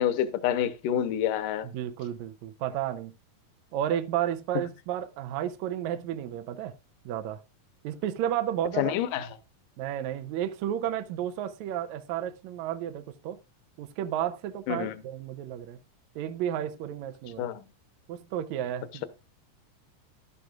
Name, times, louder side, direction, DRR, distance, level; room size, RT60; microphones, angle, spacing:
voice 1, 0.0-1.7 8.8-9.3 14.7-14.9 17.4-17.7, left 10 dB, 70° left, 2.3 m, -27 dB
voice 2, 1.6-3.1 3.7-6.7 7.0-7.4 7.8-8.9 9.8-13.4 13.8-15.8 16.1-17.5 18.1-19.1, right 11 dB, 80° right, 1.6 m, -32 dB
11.5 x 11.0 x 2.4 m
omnidirectional pair, 4.1 m